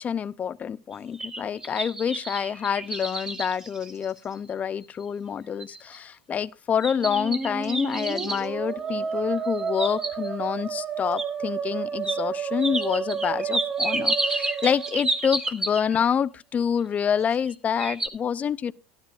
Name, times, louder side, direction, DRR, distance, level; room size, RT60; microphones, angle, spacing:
voice 1, 0.0-18.7, left 7 dB, 30° left, 0.5 m, -27 dB
sound 1, 0.9-4.5 5.0-5.1 5.6-6.0 6.8-8.5 9.5-10.5 11.2-11.3 12.0-12.2 12.6-16.1 17.1-17.5 17.8-18.1, right 2 dB, 15° right, 1.5 m, -30 dB
Musical instrument, 6.9-15.6, right 6 dB, 30° right, 2.3 m, -31 dB
13.0 x 12.0 x 2.5 m
hypercardioid pair, 95°, 5 cm